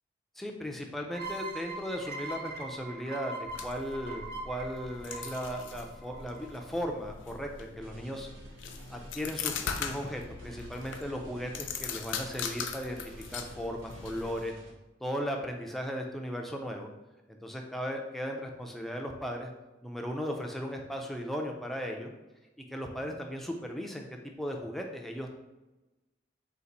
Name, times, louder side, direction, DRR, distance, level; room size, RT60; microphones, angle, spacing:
voice 1, 0.4-8.3 8.9-14.5 15.0-16.9 17.3-19.5 19.8-22.1 22.7-24.1 24.4-25.3, equal, ahead, 1 dB, 0.4 m, -36 dB
sound 1, 1.1-6.6, right 2 dB, 55° right, 0.5 m, -41 dB
sound 2, 3.4-14.5, left 6 dB, 70° left, 0.4 m, -40 dB
sound 3, 7.8-14.7, right 1 dB, 85° right, 0.8 m, -52 dB
3.9 x 2.5 x 4.0 m, 1.1 s
head